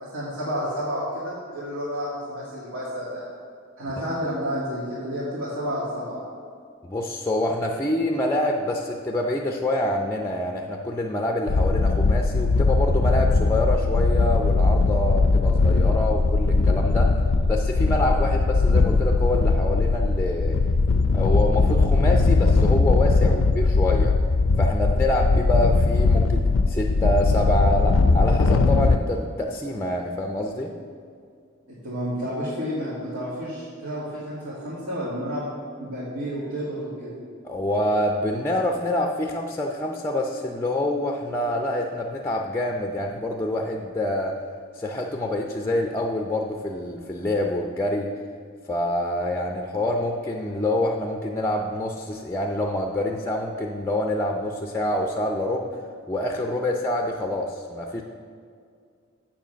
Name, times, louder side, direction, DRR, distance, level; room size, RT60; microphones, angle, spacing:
voice 1, 0.0-3.2 3.8-6.2 31.7-35.5 35.8-37.2, equal, 85° right, -9 dB, 2.1 m, -30 dB
voice 2, 6.8-17.1 17.5-20.6 21.1-24.2 24.6-30.7 37.4-44.4 44.8-48.1 48.7-55.8 56.1-58.0, left 1 dB, 15° left, 2 dB, 0.4 m, -26 dB
sound 1, 11.5-29.0, left 3 dB, 90° left, 0.4 m, -20 dB
7.4 x 7.3 x 5.7 m, 2.2 s
head